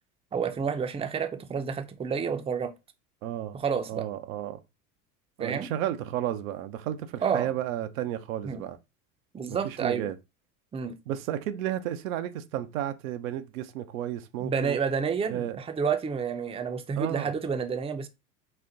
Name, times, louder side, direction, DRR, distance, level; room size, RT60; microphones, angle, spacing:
voice 1, 0.3-2.7 3.5-4.0 5.4-5.7 7.2-7.5 8.4-8.6 9.3-10.1 10.7-11.0 14.4-18.1, right 6 dB, 15° right, 0.5 m, -29 dB
voice 2, 3.2-3.6 3.9-4.6 5.4-8.8 9.5-10.2 11.1-14.8 15.3-15.6 17.0-17.3, right 11 dB, 75° right, 0.7 m, -33 dB
4.3 x 2.1 x 3.8 m
hypercardioid pair, 80°, 41 cm